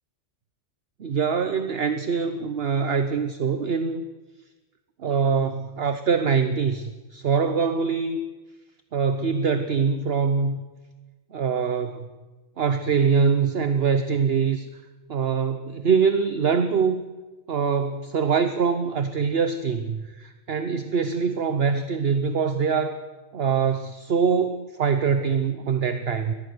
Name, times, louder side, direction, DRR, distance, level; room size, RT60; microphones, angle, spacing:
voice 1, 1.0-4.0 5.0-8.2 8.9-10.6 11.3-12.1 12.6-14.7 15.1-17.0 17.5-23.0 23.3-26.3, right 6 dB, 55° right, 9 dB, 1.1 m, -23 dB
22.5 x 19.0 x 6.8 m, 1.2 s
omnidirectional pair, 1.3 m